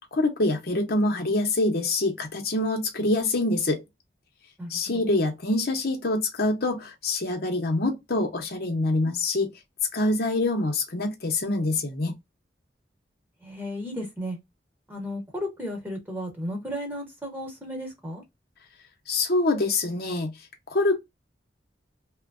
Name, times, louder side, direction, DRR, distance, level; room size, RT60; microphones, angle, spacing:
voice 1, 0.1-3.8 4.7-9.5 9.9-12.1 19.1-20.3 20.7-21.0, left 2 dB, 60° left, 0.8 m, -25 dB
voice 2, 4.6-5.0 13.4-14.4 14.9-18.2, equal, 10° right, 1.1 m, -34 dB
3.1 x 2.1 x 2.5 m
head